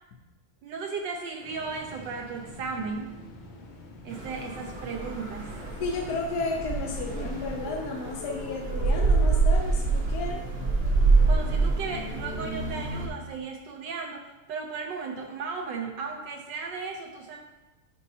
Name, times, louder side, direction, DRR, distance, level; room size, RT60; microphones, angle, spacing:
voice 1, 0.6-3.1 4.0-5.6 11.2-17.4, right 4 dB, 70° right, 3 dB, 1.1 m, -35 dB
Engine starting, 1.4-7.7, left 1 dB, 90° left, 2.0 m, -46 dB
sound 1, 4.1-13.1, right 3 dB, 45° right, 0.8 m, -26 dB
voice 2, 5.8-10.4, left 3 dB, 65° left, 0 dB, 1.0 m, -33 dB
9.9 x 5.1 x 2.8 m, 1.1 s
omnidirectional pair, 2.4 m